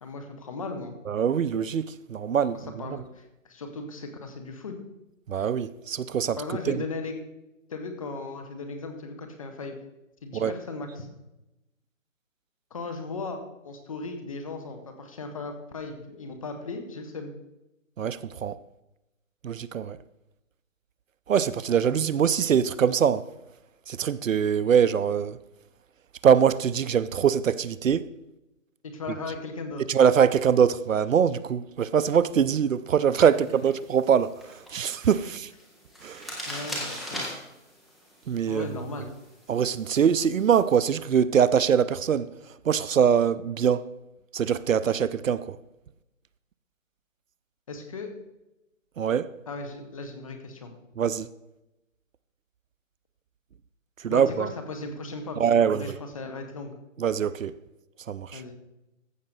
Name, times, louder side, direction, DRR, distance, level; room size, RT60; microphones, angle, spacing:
voice 1, 0.0-0.9 2.8-4.8 6.4-7.2 7.7-9.8 10.2-11.1 12.7-17.3 28.8-29.8 33.3-33.4 35.2-35.3 36.5-37.2 38.5-39.1 47.7-48.1 49.5-50.7 54.1-56.7 58.3-58.5, left 3 dB, 25° left, 1.0 m, -37 dB
voice 2, 1.1-3.0 5.3-6.4 6.7-6.8 10.3-10.5 18.0-18.6 19.4-20.0 21.3-23.2 23.9-25.4 26.2-28.1 29.9-35.5 36.0-36.3 38.3-38.7 39.5-42.3 42.6-43.9 44.3-45.6 49.0-49.3 51.0-51.3 54.0-54.5 55.4-56.0 57.0-57.5 58.1-58.4, right 8 dB, 75° right, 0.6 m, -23 dB
sound 1, 33.3-40.7, equal, ahead, 0.4 m, -41 dB
15.0 x 5.9 x 4.0 m
hypercardioid pair, 165°, 40 cm